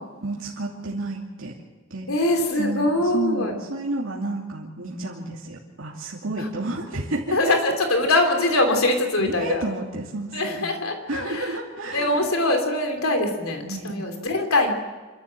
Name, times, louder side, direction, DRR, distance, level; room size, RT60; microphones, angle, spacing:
voice 1, 0.2-1.5 1.9-2.1 2.6-7.6 9.2-10.7 11.1-12.3 13.6-14.0, right 2 dB, 70° right, -4 dB, 2.7 m, -31 dB
voice 2, 2.1-3.5 6.4-6.5 7.3-9.6 10.3-11.6 11.9-14.7, left 2 dB, 90° left, 4 dB, 3.1 m, -23 dB
26.5 x 13.5 x 7.7 m, 1.3 s
head